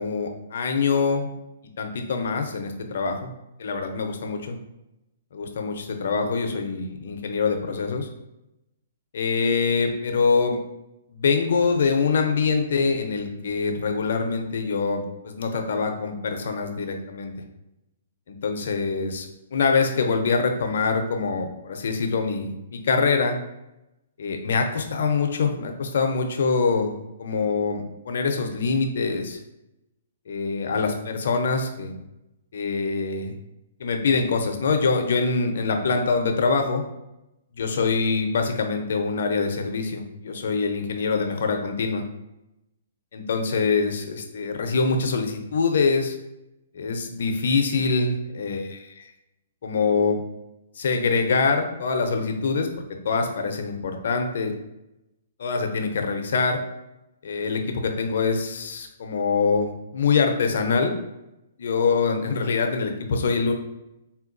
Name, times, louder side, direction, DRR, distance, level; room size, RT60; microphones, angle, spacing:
voice 1, 0.0-1.3 1.8-3.3 3.6-4.6 5.3-8.1 9.1-10.6 11.1-17.3 18.3-23.4 24.2-26.9 27.2-29.4 30.3-32.0 32.5-33.3 33.8-36.8 37.6-42.0 43.1-46.1 46.7-49.0 49.6-50.2 50.8-52.7 53.0-54.5 55.4-56.6 57.2-60.9 61.6-63.5, left 4 dB, 70° left, 4 dB, 0.5 m, -24 dB
3.7 x 2.2 x 2.5 m, 0.91 s
hypercardioid pair, 140°, 0 cm